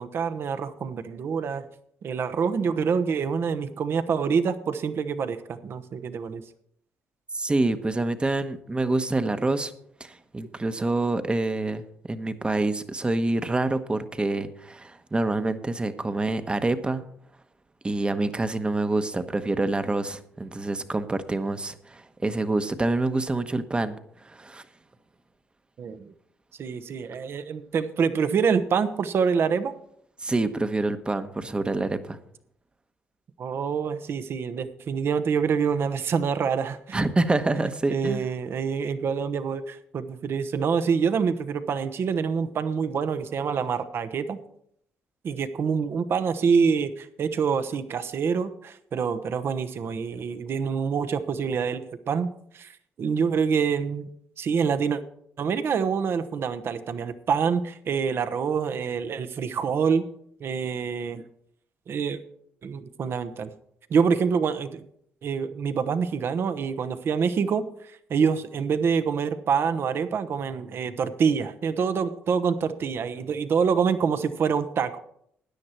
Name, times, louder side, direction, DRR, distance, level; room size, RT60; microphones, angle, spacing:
voice 1, 0.0-1.6 2.0-6.4 25.8-26.1 26.6-29.7 33.4-37.0 37.9-44.4 45.2-54.1 54.4-55.0 55.4-60.0 60.4-61.2 61.9-62.2 62.6-63.5 63.9-64.9 65.2-67.6 68.1-75.0, right 6 dB, 60° right, 11 dB, 1.1 m, -26 dB
voice 2, 7.3-9.7 10.0-11.8 12.1-17.0 17.8-24.0 24.2-24.6 30.2-32.2 36.9-38.3, right 2 dB, 20° right, 10 dB, 1.1 m, -26 dB
13.5 x 9.7 x 4.5 m, 0.69 s
supercardioid pair, 70°, 5 cm